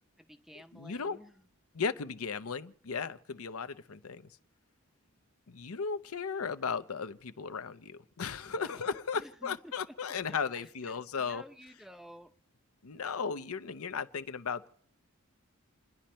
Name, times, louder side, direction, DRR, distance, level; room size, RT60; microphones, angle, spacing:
voice 1, 0.2-1.3 8.4-8.9 9.1-9.7 10.3-12.3, equal, ahead, 0.6 m, -53 dB
voice 2, 0.7-1.2 1.7-4.3 5.5-11.4 12.8-14.7, left 5 dB, 90° left, 0.7 m, -36 dB
29.0 x 10.5 x 4.3 m
head